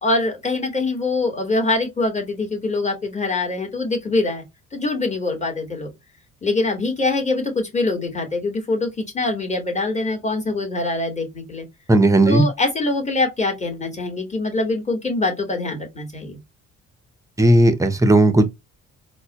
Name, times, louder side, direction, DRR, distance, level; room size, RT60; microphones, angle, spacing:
voice 1, 0.0-4.4 4.7-5.9 6.4-11.7 12.2-16.4, left 2 dB, 25° left, 1.5 m, -24 dB
voice 2, 11.9-12.5 17.4-18.4, right 1 dB, 10° right, 0.7 m, -15 dB
4.1 x 2.2 x 2.8 m
cardioid pair, 90°, 30 cm